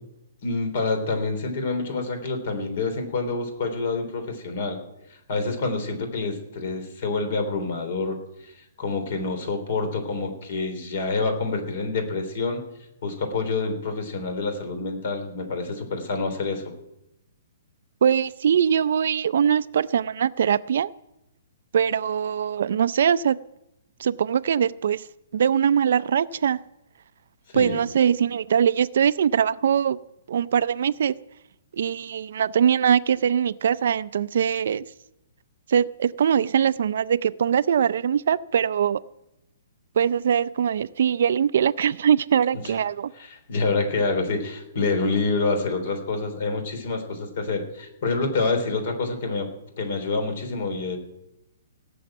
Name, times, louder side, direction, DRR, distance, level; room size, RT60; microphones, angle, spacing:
voice 1, 0.4-4.8 5.3-8.2 8.4-8.5 8.8-12.6 13.0-16.6 27.5-27.8 43.2-49.5 49.8-51.0, left 3 dB, 50° left, 3.5 m, -27 dB
voice 2, 18.0-20.9 21.7-23.4 24.0-25.1 25.3-26.6 27.5-30.0 30.3-31.2 31.7-34.8 35.7-39.0 40.0-43.1, right 8 dB, 60° right, 0.5 m, -22 dB
17.5 x 7.0 x 8.8 m
hypercardioid pair, 165°, 0 cm